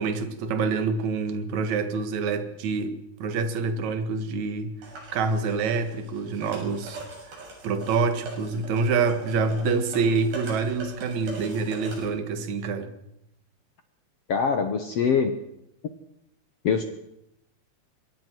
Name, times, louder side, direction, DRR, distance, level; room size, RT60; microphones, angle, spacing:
voice 1, 0.0-2.9 3.2-4.8 5.1-7.0 7.6-12.9, right 4 dB, 55° right, 2.6 m, -26 dB
sound 1, 4.8-12.0, right 3 dB, 80° right, 9.1 m, -42 dB
voice 2, 14.3-15.3 16.6-16.8, left 6 dB, 75° left, 1.4 m, -23 dB
25.0 x 23.0 x 4.7 m
omnidirectional pair, 4.6 m